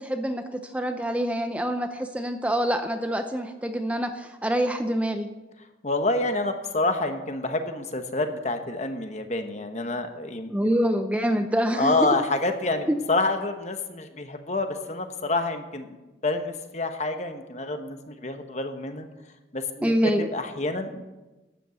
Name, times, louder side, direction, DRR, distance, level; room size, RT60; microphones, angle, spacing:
voice 1, 0.0-5.3 10.5-12.1 12.9-13.0 19.8-20.3, equal, 5° right, 7 dB, 0.6 m, -26 dB
voice 2, 5.8-10.9 11.7-19.1 19.5-19.9 20.3-21.1, left 2 dB, 40° left, 7 dB, 1.1 m, -28 dB
12.0 x 8.4 x 7.8 m, 1.1 s
head